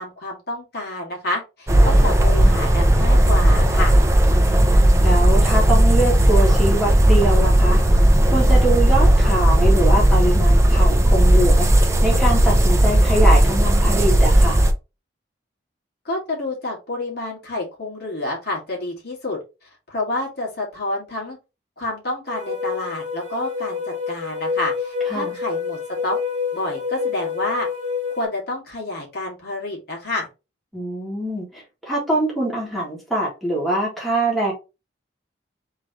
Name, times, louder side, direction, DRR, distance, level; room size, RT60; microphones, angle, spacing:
voice 1, 0.0-4.0 16.0-19.4 19.9-21.4 21.8-26.2 26.5-27.7 28.1-30.3, left 2 dB, 55° left, -3 dB, 2.1 m, -28 dB
sound 1, 1.7-14.7, right 1 dB, 15° right, 0.6 m, -15 dB
voice 2, 5.0-7.8 8.3-11.7 12.0-14.6 25.1-25.4 30.7-34.5, right 1 dB, ahead, -5 dB, 1.7 m, -23 dB
sound 2, 22.3-28.3, left 5 dB, 40° right, 1.2 m, -28 dB
3.8 x 3.2 x 4.0 m, 0.27 s
head